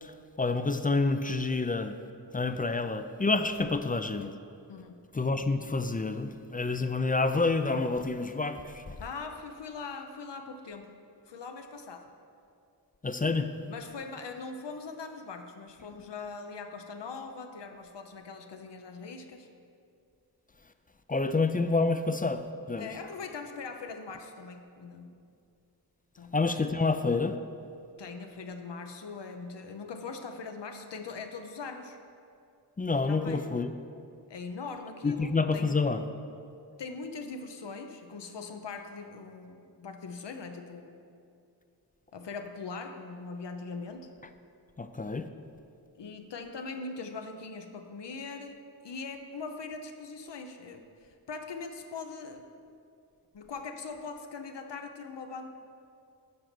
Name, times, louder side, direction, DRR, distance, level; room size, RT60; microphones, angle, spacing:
voice 1, 0.0-2.0 2.3-4.3 5.1-9.0 13.0-13.5 21.1-22.9 26.3-27.4 32.8-33.7 35.0-36.0 44.8-45.3, left 3 dB, 20° left, 9 dB, 0.4 m, -28 dB
voice 2, 4.7-5.1 9.0-10.9 11.3-12.1 13.7-19.5 22.8-25.2 26.2-26.4 28.0-32.0 32.9-33.5 34.3-35.8 36.8-41.0 42.1-44.1 46.0-52.4 53.3-55.5, left 4 dB, 75° left, 5 dB, 0.7 m, -41 dB
9.4 x 3.9 x 6.0 m, 2.4 s
cardioid pair, 50°, 42 cm